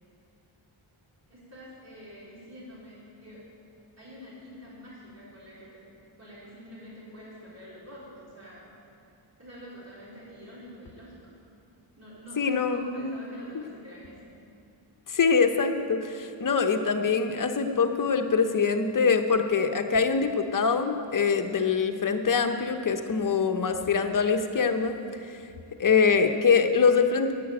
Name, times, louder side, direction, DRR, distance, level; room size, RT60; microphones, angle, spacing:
voice 1, 1.3-3.4 4.0-5.8 6.2-8.7 9.4-11.4 12.0-14.3, equal, 30° right, -8 dB, 3.5 m, -46 dB
voice 2, 12.4-13.1 15.1-25.0 25.3-25.4 25.8-27.3, left 5 dB, 40° left, 6 dB, 0.8 m, -24 dB
11.0 x 7.8 x 8.9 m, 2.5 s
wide cardioid pair, 135°, 49 cm